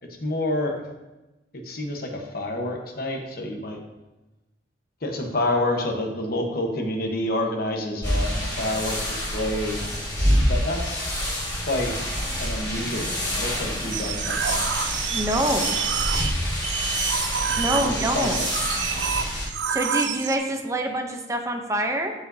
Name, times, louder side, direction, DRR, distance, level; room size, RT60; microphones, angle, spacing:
voice 1, 0.2-0.8 1.5-3.8 5.0-9.8 10.5-11.1 11.7-11.9 12.4-14.7 15.3-15.8 17.7-18.5, left 1 dB, 55° left, 2 dB, 1.1 m, -28 dB
sound 1, 8.0-19.5, equal, 20° left, 1.9 m, -27 dB
sound 2, 13.9-20.4, right 8 dB, 80° right, 0.5 m, -28 dB
voice 2, 15.1-15.7 17.6-18.4 19.7-22.1, right 1 dB, 15° right, 4 dB, 0.7 m, -25 dB
14.0 x 5.0 x 2.7 m, 1.1 s
head